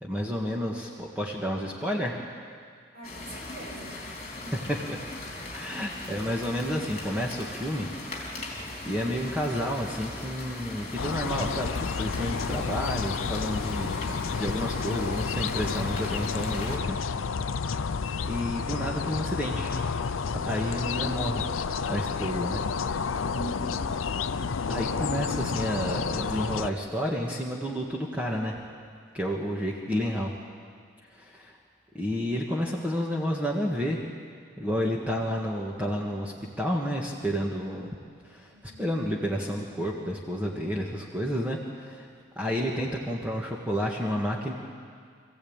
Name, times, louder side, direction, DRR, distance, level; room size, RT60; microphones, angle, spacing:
voice 1, 0.0-2.2 4.9-5.0 5.4-7.9 8.9-17.0 18.3-19.7 20.4-21.4 21.9-22.6 24.7-28.6 29.1-30.3 31.1-31.6 31.9-34.0 34.6-37.9 38.2-42.1 42.3-44.5, equal, 5° right, -2 dB, 1.7 m, -30 dB
voice 2, 2.9-4.7 5.3-5.6 23.0-24.1 38.5-39.0, right 2 dB, 50° right, -5 dB, 7.3 m, -44 dB
sound 1, 3.0-16.8, left 2 dB, 35° left, 3.5 m, -39 dB
sound 2, 11.0-26.7, left 5 dB, 80° left, 0.6 m, -30 dB
25.5 x 15.5 x 8.9 m, 2.1 s
head